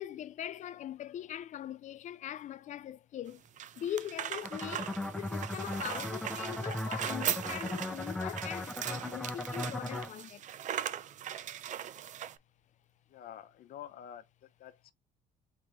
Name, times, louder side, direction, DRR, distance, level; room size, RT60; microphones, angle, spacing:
voice 1, 0.0-3.4 3.8-10.4, left 11 dB, 45° left, 0.4 m, -41 dB
sound 1, 3.3-12.4, right 10 dB, 45° right, 0.4 m, -39 dB
sound 2, 4.4-10.1, left 1 dB, 5° left, 0.8 m, -38 dB
voice 2, 13.1-14.9, left 10 dB, 65° left, 0.8 m, -48 dB
4.6 x 3.4 x 2.6 m
cardioid pair, 110°, 17 cm